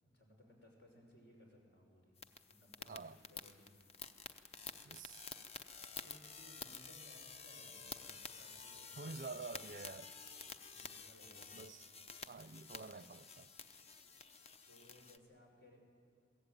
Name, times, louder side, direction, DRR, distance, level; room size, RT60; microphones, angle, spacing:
voice 1, 0.0-2.2 2.5-3.9 6.0-9.2 10.7-11.8 14.7-15.8, equal, 65° left, 5.7 m, -63 dB
sound 1, 2.2-15.2, left 5 dB, 35° left, 0.7 m, -51 dB
voice 2, 2.9-3.2 4.8-5.3 9.0-10.2 11.5-11.8 12.3-13.5, right 4 dB, 45° right, 0.5 m, -48 dB
22.5 x 16.5 x 9.0 m
head